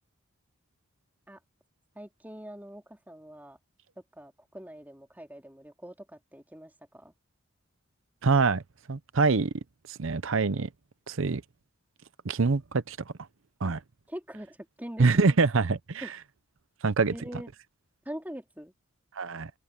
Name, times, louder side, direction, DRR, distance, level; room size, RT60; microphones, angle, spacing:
voice 1, 1.9-3.6 4.1-7.1 13.6-13.7 14.1-15.2 16.0-16.1 17.1-17.5 18.0-18.7, equal, 10° right, 2.9 m, -43 dB
voice 2, 8.2-8.6 8.9-9.5 9.9-10.7 11.1-11.4 12.2-13.0 13.6-13.8 15.0-16.1 16.8-17.1 19.2-19.5, right 4 dB, 65° right, 0.7 m, -24 dB
open air
head